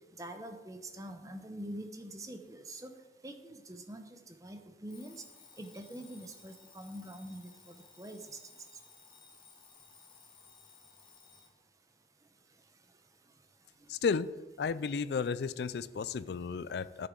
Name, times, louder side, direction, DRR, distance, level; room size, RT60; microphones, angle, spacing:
voice 1, 0.2-2.9 3.2-5.2 5.6-8.4, right 1 dB, 20° right, 6 dB, 0.8 m, -45 dB
Alarm, 4.9-11.6, left 5 dB, 25° left, 1.5 m, -58 dB
voice 2, 13.9-14.3 14.6-17.1, left 5 dB, 65° left, 17 dB, 0.4 m, -33 dB
10.5 x 9.3 x 3.9 m, 1.2 s
head